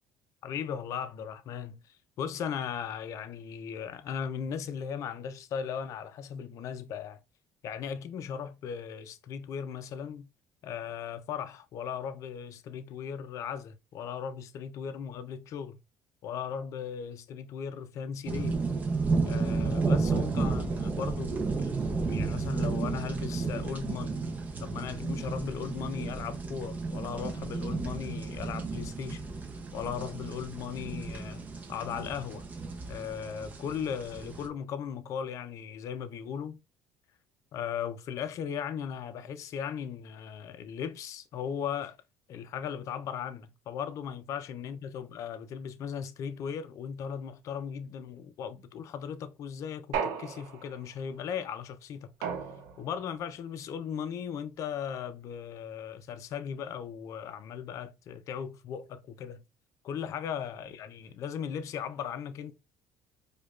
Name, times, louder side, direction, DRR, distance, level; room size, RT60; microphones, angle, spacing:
voice 1, 0.4-7.2 7.6-10.3 10.6-15.8 16.2-18.6 19.3-24.2 24.6-29.2 29.7-31.4 31.7-32.5 32.9-36.6 37.5-42.0 42.3-52.1 52.8-59.4 59.8-62.5, left 7 dB, 50° left, 0.4 m, -37 dB
sound 1, 18.3-34.5, right 4 dB, 25° right, 0.6 m, -32 dB
sound 2, 49.9-50.9 52.2-53.0, right 6 dB, 90° right, 0.8 m, -35 dB
4.9 x 2.2 x 2.3 m
cardioid pair, 130°, 7 cm